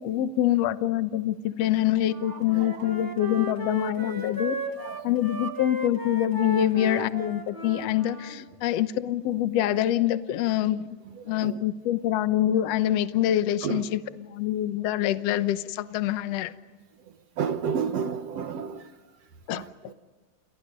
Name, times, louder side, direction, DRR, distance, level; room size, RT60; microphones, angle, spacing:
voice 1, 0.0-4.6 5.0-11.0 11.3-14.0 14.3-16.5 19.5-19.6, left 12 dB, 65° left, 12 dB, 1.9 m, -25 dB
Wind instrument woodwind instrument, 2.0-8.3, equal, 10° right, 1.9 m, -35 dB
voice 2, 2.2-3.0 4.8-5.2 11.1-11.6 13.6-13.9 17.4-18.9 19.5-19.9, right 7 dB, 65° right, 7 dB, 2.3 m, -32 dB
29.5 x 29.5 x 5.3 m, 1.4 s
omnidirectional pair, 3.3 m